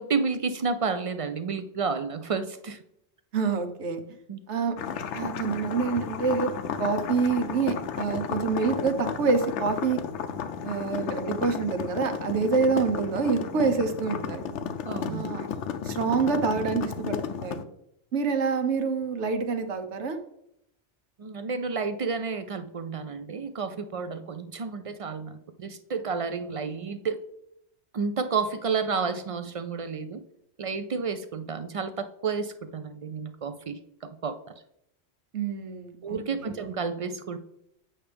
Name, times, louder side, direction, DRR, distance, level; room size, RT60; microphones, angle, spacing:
voice 1, 0.0-2.8 4.3-4.4 14.8-15.2 21.2-27.2 27.9-30.2 30.6-34.4 36.0-37.4, right 5 dB, 65° right, 10 dB, 0.3 m, -31 dB
voice 2, 3.3-4.0 4.5-4.8 5.1-6.5 6.8-10.0 10.6-14.4 15.1-15.5 15.8-17.7 18.1-20.2 35.3-36.7, right 5 dB, 85° right, 7 dB, 1.2 m, -27 dB
sound 1, 4.8-17.6, left 7 dB, 85° left, 0.9 m, -33 dB
8.6 x 5.8 x 3.4 m, 0.77 s
omnidirectional pair, 1.2 m